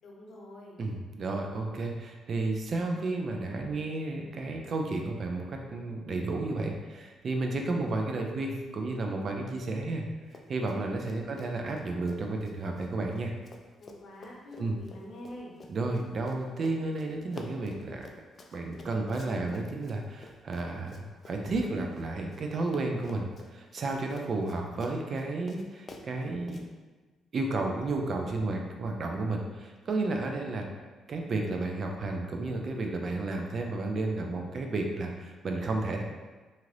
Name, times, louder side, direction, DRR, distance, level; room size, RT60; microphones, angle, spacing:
voice 1, 0.0-0.8 13.8-15.5, left 1 dB, 65° left, -3 dB, 0.8 m, -46 dB
voice 2, 0.8-10.0 10.5-13.3 14.6-14.8 15.7-18.1 18.5-26.6 27.3-30.7 31.1-36.0, right 2 dB, 50° right, 2 dB, 0.4 m, -32 dB
Run, 10.3-10.8 11.1-22.4 22.7-26.6, left 3 dB, 45° left, 0.3 m, -49 dB
2.8 x 2.5 x 3.1 m, 1.3 s
cardioid pair, 90°, 0 cm